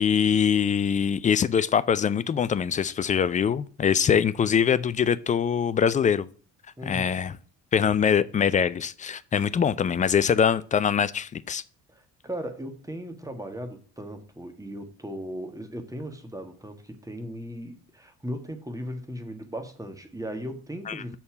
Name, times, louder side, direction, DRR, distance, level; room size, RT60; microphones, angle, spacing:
voice 1, 0.0-6.3 6.9-7.4 7.7-11.6 20.9-21.2, left 7 dB, 20° left, 0.3 m, -23 dB
voice 2, 6.8-7.3 11.9-21.2, equal, 5° right, 1.7 m, -37 dB
7.1 x 4.3 x 6.7 m
hypercardioid pair, 55°, 47 cm